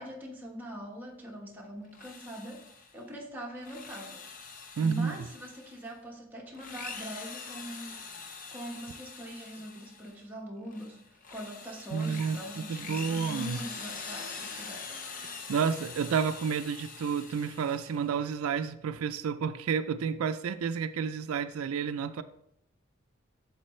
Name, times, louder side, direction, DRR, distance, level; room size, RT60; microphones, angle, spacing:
voice 1, 0.0-4.3 4.8-8.0 8.5-14.9, equal, 10° right, -3 dB, 1.2 m, -42 dB
Drill, 1.8-3.0 3.5-5.9 6.5-10.2 10.7-18.1, left 5 dB, 40° left, 0.7 m, -44 dB
voice 2, 4.8-5.2 11.9-13.6 15.2-22.2, right 6 dB, 80° right, 11 dB, 0.4 m, -30 dB
8.6 x 7.2 x 3.1 m, 0.75 s
head